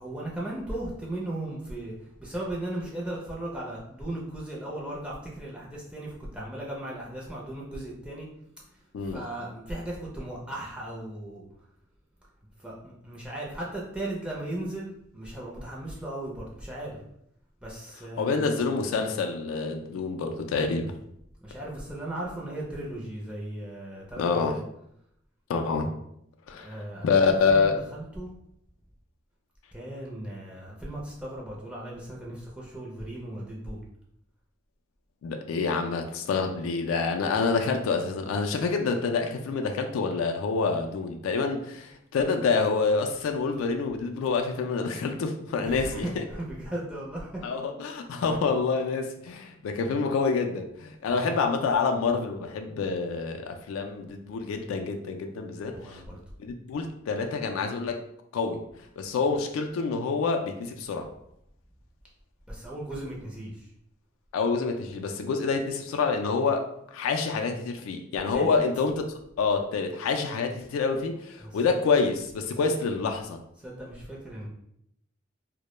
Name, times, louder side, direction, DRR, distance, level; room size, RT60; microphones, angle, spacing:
voice 1, 0.0-8.3 8.6-11.4 12.6-17.0 17.6-18.5 21.4-24.6 26.5-28.3 29.7-33.8 45.6-47.5 48.3-48.4 51.1-51.3 55.7-56.2 62.5-63.7 68.3-68.6 71.4-71.9 72.6-72.7 73.6-74.5, right 1 dB, 5° right, -4 dB, 0.4 m, -37 dB
voice 2, 18.2-20.9 24.2-24.6 25.5-25.9 26.5-26.8 27.0-27.7 35.2-46.2 47.4-56.0 56.4-58.0 58.3-58.6 59.0-61.1 64.3-68.9 69.4-73.4, left 4 dB, 90° left, 4 dB, 0.3 m, -27 dB
2.1 x 2.0 x 3.0 m, 0.74 s
head